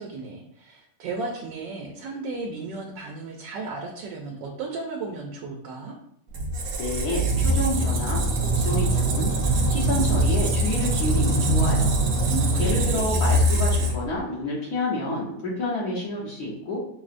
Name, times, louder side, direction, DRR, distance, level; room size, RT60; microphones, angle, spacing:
voice 1, 0.0-5.9 12.2-13.0, right 3 dB, 85° right, 0 dB, 1.3 m, -34 dB
Squeak, 6.3-14.2, right 1 dB, 65° right, 1.0 m, -22 dB
voice 2, 6.8-12.1 12.6-16.8, left 1 dB, 65° left, -5 dB, 1.2 m, -29 dB
5.6 x 2.0 x 2.4 m, 0.72 s
omnidirectional pair, 1.9 m